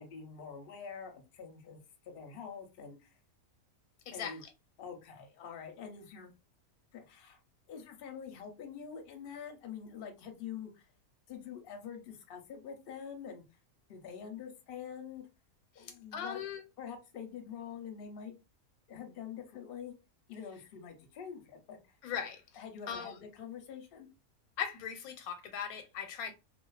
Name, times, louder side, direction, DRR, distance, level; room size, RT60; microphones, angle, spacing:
voice 1, 0.0-3.2 4.1-4.4 4.8-6.4 6.9-7.4 7.7-10.9 11.3-13.4 13.9-15.2 15.8-16.4 16.8-18.4 18.9-19.9 20.3-22.0 22.6-24.1, left 7 dB, 55° left, 0.7 m, -46 dB
voice 2, 4.1-4.5 15.7-16.6 22.0-22.4 22.9-23.2 24.6-26.3, left 8 dB, 85° left, 1.1 m, -39 dB
2.4 x 2.4 x 2.3 m
omnidirectional pair, 1.5 m